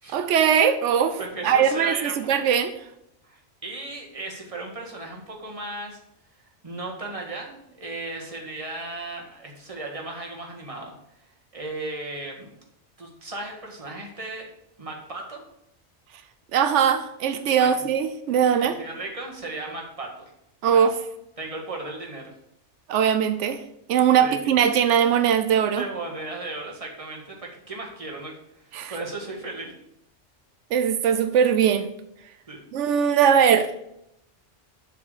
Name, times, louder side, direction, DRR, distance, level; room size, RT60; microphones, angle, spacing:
voice 1, 0.1-1.2 1.4-2.7 16.5-18.7 20.6-20.9 22.9-23.6 23.9-25.8 28.7-29.0 30.7-31.9 32.7-33.7, right 8 dB, 85° right, 10 dB, 0.9 m, -20 dB
voice 2, 1.2-2.3 3.2-6.0 6.4-10.9 11.5-12.5 13.0-14.5 14.8-15.4 17.6-17.8 18.6-20.3 20.7-20.9 21.4-22.3 24.2-24.5 25.8-29.7 32.5-32.6, right 2 dB, 30° right, 0 dB, 1.7 m, -36 dB
7.4 x 4.6 x 6.5 m, 0.79 s
omnidirectional pair, 1.2 m